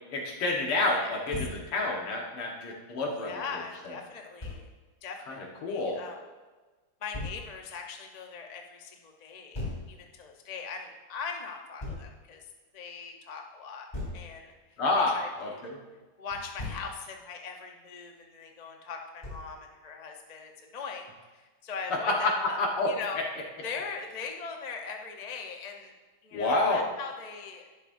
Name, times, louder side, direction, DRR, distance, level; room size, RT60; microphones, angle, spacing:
voice 1, 0.1-3.4 3.9-4.0 5.3-6.0 14.8-15.8 21.9-22.3 22.6-22.9 26.3-26.8, left 2 dB, 90° left, -1 dB, 2.4 m, -28 dB
voice 2, 0.8-1.1 3.2-4.7 5.0-6.2 7.0-12.5 12.7-13.9 14.1-14.8 15.1-15.8 16.2-22.6 22.9-23.2 23.6-25.9 26.2-27.7, left 5 dB, 45° left, 2 dB, 0.5 m, -40 dB
Thump thud, 1.3-1.6 4.4-4.6 7.1-7.4 9.5-9.9 11.8-12.1 13.9-14.3 16.3-16.9 19.2-19.5, left 2 dB, 20° left, 3.4 m, -37 dB
11.5 x 11.0 x 2.7 m, 1.3 s
omnidirectional pair, 2.3 m